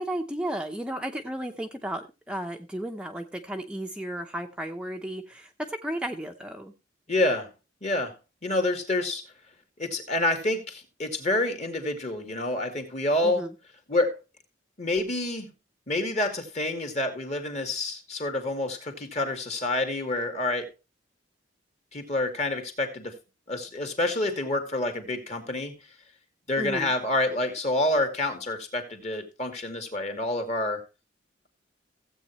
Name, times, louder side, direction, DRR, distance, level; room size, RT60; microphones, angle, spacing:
voice 1, 0.0-6.7 13.2-13.5 26.6-26.9, right 1 dB, 5° right, 3 dB, 0.7 m, -34 dB
voice 2, 7.1-7.5 7.8-8.1 8.4-9.2 9.8-13.5 13.9-14.1 14.8-15.5 15.9-20.7 21.9-23.1 23.5-25.8 26.5-30.8, left 2 dB, 40° left, 5 dB, 2.4 m, -28 dB
16.0 x 8.2 x 3.1 m, 0.27 s
head